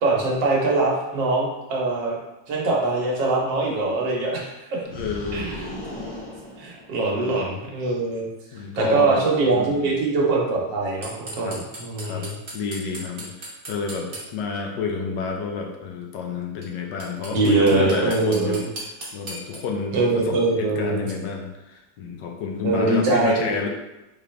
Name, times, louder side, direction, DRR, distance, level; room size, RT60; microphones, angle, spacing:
voice 1, 0.0-2.2 2.5-4.8 5.3-5.6 6.6-12.4 17.3-18.7 19.9-21.0 22.6-23.5, right 3 dB, 90° right, -2 dB, 1.7 m, -23 dB
voice 2, 4.9-5.6 7.0-7.5 8.5-9.2 9.5-9.9 11.4-11.6 12.0-12.3 12.5-18.6 19.1-23.7, left 5 dB, 80° left, 2 dB, 1.3 m, -30 dB
sound 1, 4.9-7.3, left 1 dB, 60° left, 2.0 m, -36 dB
sound 2, 11.0-14.2 16.6-16.7 17.0-19.6, right 2 dB, 40° right, 1.0 m, -36 dB
4.8 x 3.3 x 3.1 m, 0.98 s
omnidirectional pair, 1.9 m